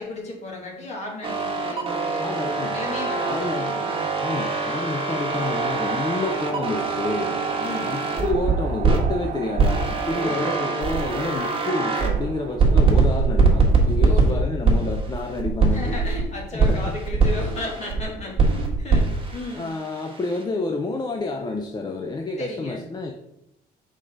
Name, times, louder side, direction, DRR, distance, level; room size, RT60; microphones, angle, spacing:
voice 1, 0.0-2.3 2.7-4.0 5.1-5.6 7.6-8.0 10.2-10.7 14.0-14.5 15.7-19.7 22.4-22.8, left 2 dB, 40° left, -1 dB, 2.3 m, -34 dB
sound 1, 1.2-9.1 9.5-12.2 12.6-16.2 16.6-18.0 18.4-20.4, right 4 dB, 30° right, 1.6 m, -23 dB
voice 2, 2.2-2.8 3.3-3.8 4.2-7.3 7.8-15.9 16.5-17.0 19.5-23.1, left 3 dB, 25° left, 3 dB, 0.6 m, -29 dB
sound 2, 5.3-14.2, right 8 dB, 50° right, 0.5 m, -35 dB
5.9 x 4.9 x 3.9 m, 0.82 s
cardioid pair, 110°, 17 cm